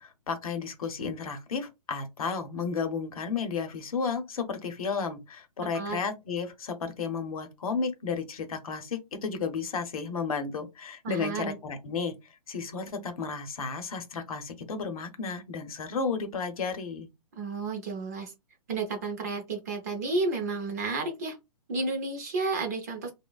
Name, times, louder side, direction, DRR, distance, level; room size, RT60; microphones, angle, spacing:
voice 1, 0.0-12.1 12.5-17.1, left 5 dB, 65° left, 0.7 m, -33 dB
voice 2, 11.0-11.6 17.4-18.3 18.7-21.4 21.7-23.1, right 3 dB, 25° right, 0.4 m, -31 dB
3.1 x 2.0 x 2.2 m
hypercardioid pair, 160°, 20 cm